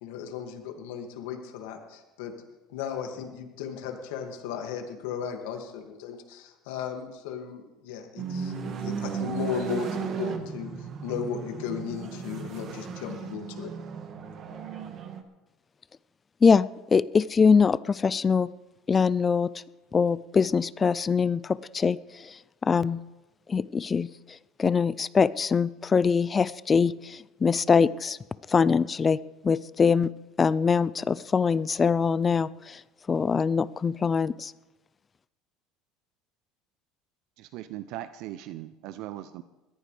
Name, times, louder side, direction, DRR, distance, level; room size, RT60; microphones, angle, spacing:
voice 1, 0.0-2.3 2.7-10.7 11.0-13.7, left 8 dB, 85° left, 3 dB, 2.2 m, -36 dB
sound 1, 8.2-15.2, right 7 dB, 40° right, 1.4 m, -35 dB
voice 2, 16.4-18.5 18.9-19.5 19.9-22.0 22.6-23.0 23.5-24.1 24.6-26.9 27.4-28.2 28.5-29.2 29.4-30.1 30.4-32.5 33.1-34.5, left 5 dB, 25° left, 19 dB, 0.4 m, -23 dB
voice 3, 37.4-39.4, right 13 dB, 65° right, 12 dB, 0.6 m, -39 dB
21.0 x 14.5 x 3.4 m, 1.1 s
cardioid pair, 130°, 0 cm